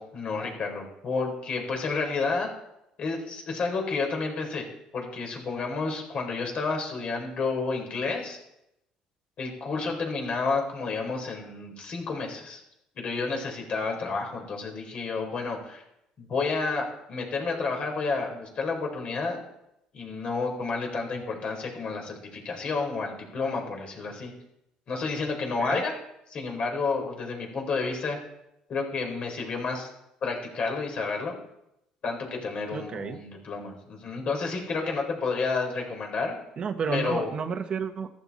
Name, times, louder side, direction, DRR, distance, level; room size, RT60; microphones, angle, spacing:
voice 1, 0.0-2.5 3.0-4.6 4.9-8.4 9.4-12.6 13.0-15.8 16.2-19.4 19.9-24.3 24.9-25.9 26.3-28.2 28.7-29.9 30.2-31.3 32.0-36.3 36.9-37.3, left 4 dB, 50° left, 2 dB, 4.4 m, -30 dB
voice 2, 32.7-33.2 36.6-38.1, right 6 dB, 40° right, 7 dB, 1.3 m, -31 dB
14.0 x 13.5 x 4.3 m, 0.84 s
cardioid pair, 100°, 3 cm